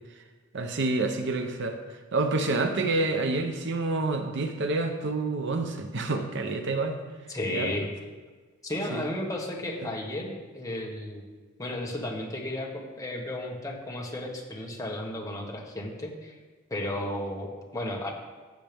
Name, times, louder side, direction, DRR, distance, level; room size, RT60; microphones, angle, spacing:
voice 1, 0.5-1.8 2.1-7.0 7.5-7.7 8.9-9.0, right 3 dB, 60° right, 6 dB, 0.8 m, -28 dB
voice 2, 7.3-7.9 8.6-11.2 11.6-16.3 16.7-18.1, left 1 dB, 15° left, -1 dB, 1.5 m, -33 dB
14.5 x 7.4 x 3.5 m, 1.4 s
head